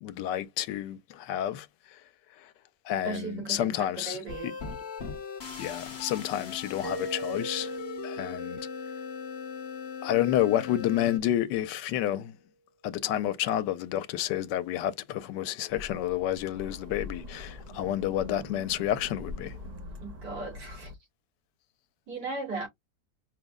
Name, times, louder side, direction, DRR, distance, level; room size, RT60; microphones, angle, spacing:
voice 1, 0.0-1.7 2.9-4.2 4.4-4.5 5.6-7.7 8.0-8.6 10.0-12.3 12.8-19.5, left 12 dB, 80° left, 1.2 m, -29 dB
voice 2, 3.0-4.5 20.0-20.9 22.1-22.7, right 3 dB, 70° right, 2.9 m, -37 dB
sound 1, 4.3-11.2, left 7 dB, 45° left, 1.0 m, -39 dB
Mallet percussion, 6.8-11.4, right 2 dB, 25° right, 0.9 m, -41 dB
sound 2, 15.7-20.9, left 2 dB, 45° right, 0.5 m, -43 dB
5.1 x 2.0 x 3.5 m
omnidirectional pair, 1.8 m